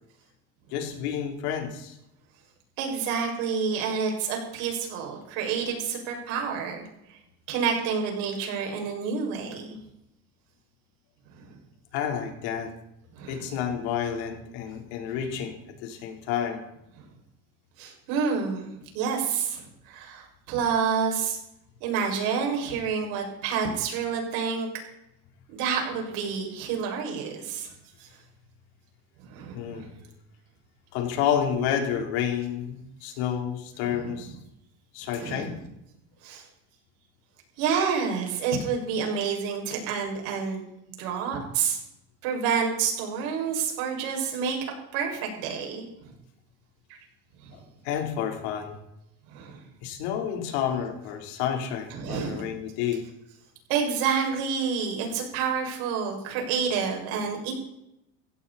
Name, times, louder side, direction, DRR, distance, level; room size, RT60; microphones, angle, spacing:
voice 1, 0.7-2.0 11.9-12.7 13.3-16.6 29.5-29.9 30.9-34.3 34.9-35.6 47.5-48.8 49.8-53.0, left 8 dB, 85° left, 3 dB, 3.9 m, -30 dB
voice 2, 2.8-6.8 7.1-7.2 7.5-9.7 11.3-11.5 13.1-13.4 17.0-17.1 17.8-18.7 18.9-21.4 21.8-24.7 25.5-27.7 28.0-28.1 29.2-29.9 33.8-34.1 35.2-35.5 36.2-36.4 37.6-41.8 42.2-44.6 44.9-46.1 47.4-47.5 49.3-49.6 51.9-52.5 53.7-57.5, right 6 dB, 75° right, 1 dB, 6.2 m, -29 dB
17.0 x 16.0 x 4.2 m, 0.81 s
cardioid pair, 150°, 33 cm